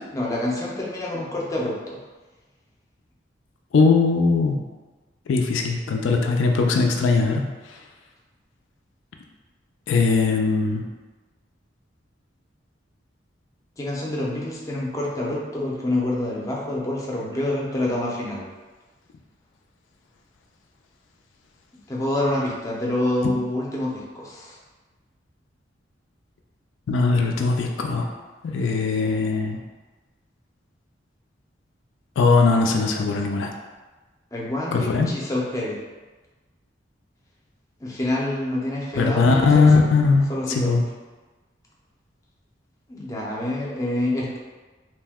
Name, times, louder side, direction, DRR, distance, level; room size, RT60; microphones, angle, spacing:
voice 1, 0.1-2.0 13.8-18.5 21.9-24.6 34.3-35.8 37.8-39.9 40.3-40.7 42.9-44.4, left 1 dB, 15° left, -4 dB, 0.5 m, -27 dB
voice 2, 3.7-4.6 5.3-7.4 9.9-10.9 26.9-28.1 28.4-29.6 32.2-33.5 34.7-35.1 39.0-40.3 40.6-40.8, left 4 dB, 85° left, 2 dB, 0.3 m, -19 dB
2.7 x 2.1 x 3.4 m, 1.2 s
head